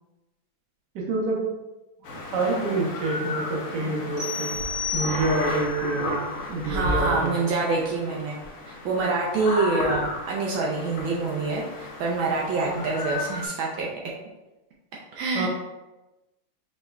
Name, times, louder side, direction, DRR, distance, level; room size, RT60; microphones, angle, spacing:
voice 1, 0.9-1.4 2.3-4.5 4.9-7.4 15.3-15.5, right 3 dB, 60° right, -2 dB, 1.4 m, -27 dB
sound 1, 2.0-13.5, left 2 dB, 60° left, 0.8 m, -33 dB
sound 2, 4.2-5.7, left 5 dB, 25° right, 1.0 m, -31 dB
voice 2, 6.6-8.4 8.6-13.9 15.1-15.5, right 3 dB, 80° right, -3 dB, 1.4 m, -26 dB
5.2 x 3.6 x 2.2 m, 1.0 s
omnidirectional pair, 2.2 m